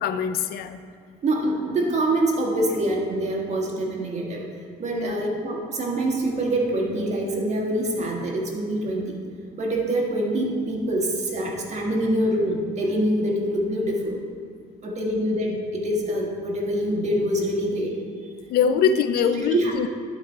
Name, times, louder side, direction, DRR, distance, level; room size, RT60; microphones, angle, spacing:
voice 1, 0.0-0.8 4.9-5.2 18.5-19.9, left 7 dB, 65° left, 10 dB, 0.4 m, -23 dB
voice 2, 1.2-4.4 4.8-9.1 9.6-14.2 14.8-18.0 18.6-18.7 19.5-19.9, right 1 dB, 40° right, -1 dB, 1.5 m, -25 dB
11.5 x 4.2 x 4.4 m, 2.1 s
cardioid pair, 110°, 17 cm